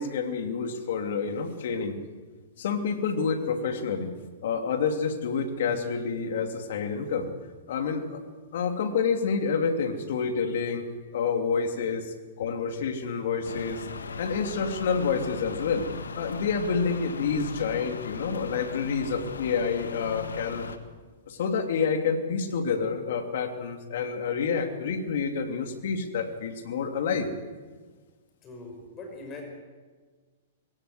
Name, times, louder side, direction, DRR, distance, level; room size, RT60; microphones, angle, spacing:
voice 1, 0.0-2.0 2.6-4.1 4.4-7.3 7.7-8.2 8.5-10.9 11.1-13.9 14.2-15.9 16.2-20.7 21.3-27.3, left 5 dB, 65° left, 6 dB, 2.9 m, -28 dB
sound 1, 13.4-20.8, left 5 dB, 85° left, 1.7 m, -38 dB
voice 2, 28.4-29.4, left 3 dB, 30° left, 3 dB, 5.8 m, -42 dB
22.0 x 18.5 x 8.0 m, 1.4 s
hypercardioid pair, 120°, 0 cm